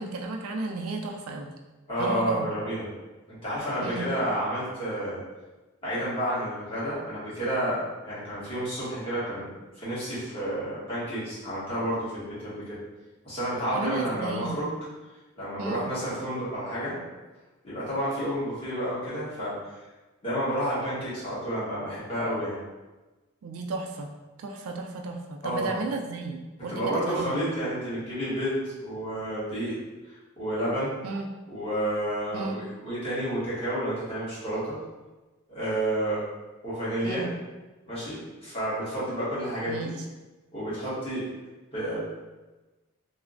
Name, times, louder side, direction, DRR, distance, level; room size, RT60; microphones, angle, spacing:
voice 1, 0.0-1.5 2.0-2.5 3.8-4.1 13.7-14.6 15.6-15.8 23.4-24.1 24.4-27.5 31.0-31.3 32.3-32.6 37.0-37.3 39.7-40.1, right 3 dB, 90° right, 2 dB, 0.4 m, -33 dB
voice 2, 1.9-2.9 3.3-5.2 5.8-9.5 9.8-12.8 13.2-14.7 15.4-17.0 17.6-19.6 20.2-22.6 25.4-25.7 26.7-29.8 30.1-30.9 31.5-34.8 35.5-36.2 36.6-37.3 37.9-39.9 40.5-41.3 41.7-42.0, equal, 25° left, -11 dB, 1.1 m, -30 dB
3.2 x 2.0 x 2.5 m, 1.2 s
head